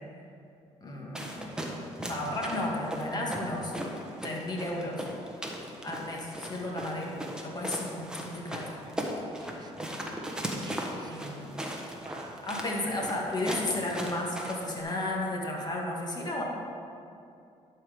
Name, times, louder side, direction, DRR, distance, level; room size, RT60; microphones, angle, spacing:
voice 1, 0.8-1.4 2.0-3.7 4.2-5.1 5.8-8.8 11.0-11.6 12.4-16.4, left 1 dB, 35° left, -2 dB, 2.0 m, -33 dB
sound 1, 1.2-14.8, equal, 5° right, 1.2 m, -38 dB
voice 2, 9.4-9.7 10.5-11.5 11.8-12.4, right 4 dB, 35° right, 6 dB, 0.8 m, -50 dB
11.0 x 4.8 x 5.2 m, 2.6 s
cardioid pair, 85°, 12 cm